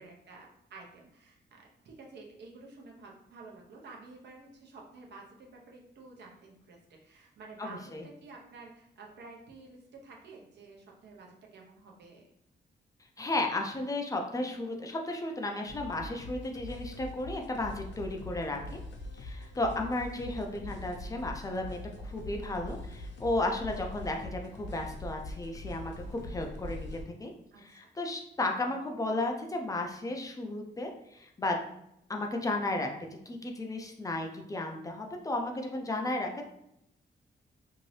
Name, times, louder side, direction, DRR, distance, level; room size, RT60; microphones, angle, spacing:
voice 1, 0.0-12.3 27.5-27.9, right 3 dB, 70° right, -1 dB, 0.7 m, -51 dB
voice 2, 7.6-8.0 13.2-18.8 19.1-27.3 27.6-31.6 32.1-32.9 33.3-36.5, left 2 dB, 20° left, 2 dB, 0.3 m, -34 dB
sound 1, 15.7-27.0, left 2 dB, 75° left, 0.5 m, -42 dB
2.7 x 2.6 x 3.2 m, 0.78 s
wide cardioid pair, 160°, 19 cm